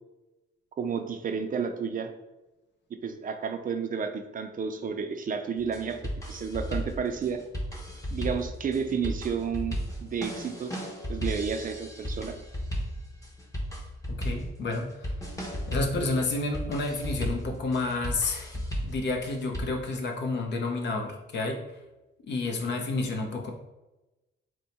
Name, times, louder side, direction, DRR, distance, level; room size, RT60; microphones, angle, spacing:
voice 1, 0.8-2.1 3.0-6.0 6.3-7.4 8.1-10.7 11.1-12.4, right 6 dB, 45° right, 6 dB, 0.5 m, -31 dB
sound 1, 5.6-19.6, equal, 15° left, 0.9 m, -35 dB
voice 2, 14.1-15.1 15.7-21.6 22.3-23.5, left 3 dB, 60° left, 3 dB, 0.8 m, -30 dB
4.5 x 2.2 x 4.2 m, 1.0 s
cardioid pair, 90°, 20 cm